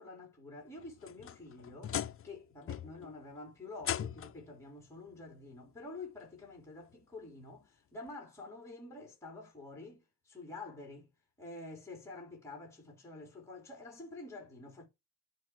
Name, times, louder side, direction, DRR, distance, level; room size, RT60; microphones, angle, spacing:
voice 1, 0.0-11.1 11.4-14.9, left 2 dB, 5° left, 3.5 m, -48 dB
sound 1, 0.8-2.4 2.7-3.1 3.8-4.5 5.7-5.8 6.4-6.5 8.1-8.2, left 10 dB, 35° left, 0.6 m, -39 dB
9.5 x 4.2 x 7.1 m
cardioid pair, 165°, 39 cm